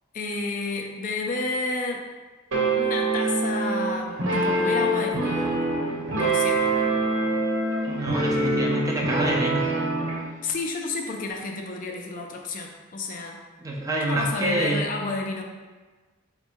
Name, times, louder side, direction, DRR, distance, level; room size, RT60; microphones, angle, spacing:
voice 1, 0.1-2.1 2.8-5.6 6.2-6.8 10.4-13.4 14.0-15.4, left 3 dB, 40° left, 2 dB, 0.4 m, -31 dB
sound 1, 2.5-10.2, right 2 dB, 70° right, 1.0 m, -25 dB
voice 2, 7.9-9.7 13.6-14.8, right 1 dB, 15° right, -1 dB, 0.4 m, -26 dB
3.5 x 2.2 x 4.3 m, 1.3 s
head